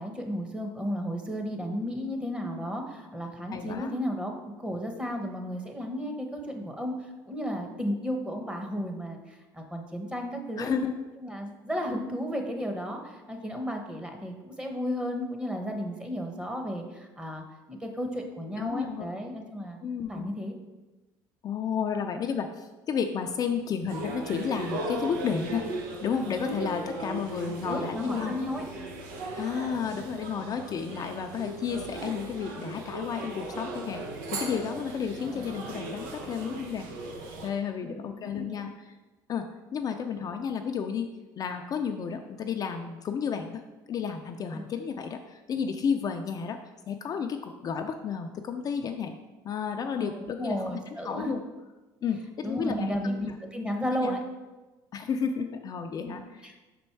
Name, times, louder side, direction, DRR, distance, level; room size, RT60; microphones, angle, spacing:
voice 1, 0.0-4.3 4.6-6.9 7.3-10.7 11.2-19.8 20.1-20.5 27.6-28.6 35.2-35.5 37.8-38.6 44.5-44.7 50.0-51.3 52.4-54.2 56.0-56.5, equal, 10° right, 3 dB, 1.0 m, -34 dB
voice 2, 3.5-3.9 10.6-10.9 18.5-19.1 19.8-20.3 21.4-25.6 26.0-28.3 29.4-34.0 34.3-36.9 37.4-38.9 39.3-39.5 39.7-41.1 41.4-43.6 43.9-46.6 46.9-49.1 49.4-51.4 52.0-53.3 53.9-54.2 54.9-56.5, left 6 dB, 40° left, 5 dB, 0.4 m, -32 dB
sound 1, 23.9-37.5, right 2 dB, 90° right, 0.9 m, -37 dB
5.3 x 4.3 x 4.5 m, 1.1 s
supercardioid pair, 95°, 9 cm